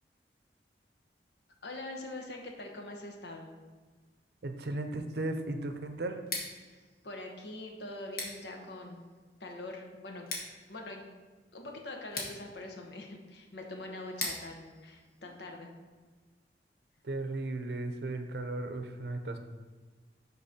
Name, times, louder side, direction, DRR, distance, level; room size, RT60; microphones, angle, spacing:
voice 1, 1.6-3.6 6.7-9.0 9.4-10.3 10.7-11.1 11.5-15.7, left 2 dB, 75° left, 2 dB, 1.0 m, -43 dB
voice 2, 4.4-6.2 17.0-19.4, right 2 dB, 70° right, 7 dB, 0.6 m, -36 dB
Scissors, 6.2-16.0, left 3 dB, 55° left, 1.3 m, -44 dB
11.0 x 4.0 x 2.8 m, 1.4 s
head